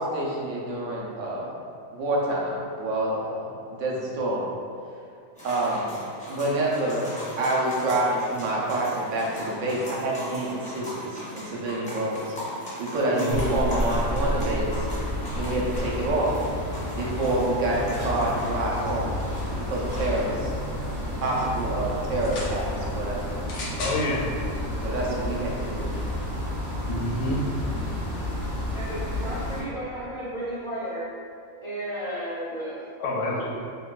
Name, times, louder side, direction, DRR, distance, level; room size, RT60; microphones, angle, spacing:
voice 1, 0.0-1.5 1.9-3.5 3.8-4.5 5.4-6.0 6.3-7.0 7.4-11.1 11.3-12.2 12.8-14.7 15.4-16.3 17.0-19.1 19.7-20.5 21.2-23.4 24.8-25.9, right 1 dB, 70° right, -4 dB, 0.9 m, -27 dB
sound 1, 5.4-20.2, equal, 10° left, 0.6 m, -39 dB
voice 2, 13.0-13.5 23.8-24.3 24.8-24.9 26.9-27.4 33.0-33.5, left 1 dB, 90° left, -3 dB, 1.0 m, -28 dB
sound 2, 13.3-29.6, left 1 dB, 40° right, 1.5 m, -31 dB
sound 3, 22.1-22.6 23.4-24.0 24.9-25.0, left 2 dB, 70° left, 0.8 m, -35 dB
voice 3, 28.7-31.1 31.6-33.4, equal, 55° right, -11 dB, 0.3 m, -34 dB
3.6 x 2.2 x 2.4 m, 2.4 s
omnidirectional pair, 1.4 m